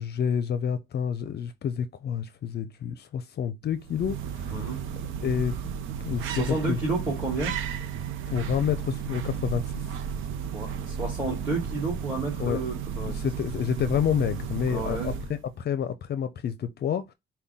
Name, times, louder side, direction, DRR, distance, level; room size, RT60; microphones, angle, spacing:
voice 1, 0.0-4.5 5.2-5.5 6.0-6.8 8.3-9.6 12.4-12.6 13.0-15.1 15.6-17.1, left 8 dB, 55° left, 0.5 m, -28 dB
sound 1, 3.7-15.5, right 8 dB, 85° right, 0.6 m, -33 dB
voice 2, 4.5-4.8 6.3-7.6 10.5-13.2 14.7-15.2, right 2 dB, 10° right, 2.4 m, -31 dB
5.5 x 2.2 x 3.5 m
cardioid pair, 90°, 20 cm